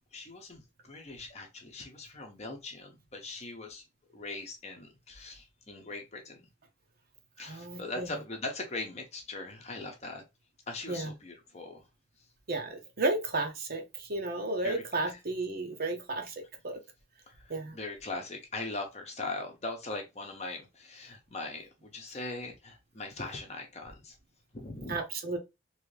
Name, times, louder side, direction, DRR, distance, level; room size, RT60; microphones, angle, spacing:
voice 1, 0.1-3.8 4.1-6.4 7.4-10.2 10.7-11.8 14.6-15.2 17.7-24.1 24.5-25.0, left 2 dB, 35° left, 0.8 m, -40 dB
voice 2, 7.4-8.1 10.9-11.1 12.5-16.3 16.6-16.8 17.5-17.8 24.9-25.4, right 2 dB, 50° right, 0.7 m, -33 dB
3.1 x 2.6 x 3.2 m
head